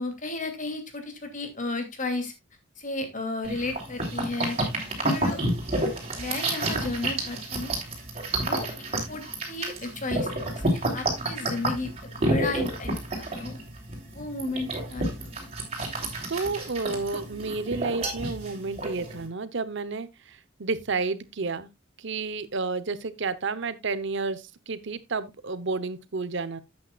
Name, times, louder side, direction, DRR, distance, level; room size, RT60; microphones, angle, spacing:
voice 1, 0.0-2.3 2.8-4.6 5.0-5.4 6.2-7.7 8.3-8.7 9.1-13.6 14.1-15.1, left 2 dB, 40° left, 2.7 m, -33 dB
sound 1, 3.4-19.3, right 1 dB, 35° right, 3.8 m, -30 dB
voice 2, 16.3-21.7 22.0-26.6, right 4 dB, 65° right, 0.9 m, -31 dB
12.0 x 8.6 x 2.4 m
head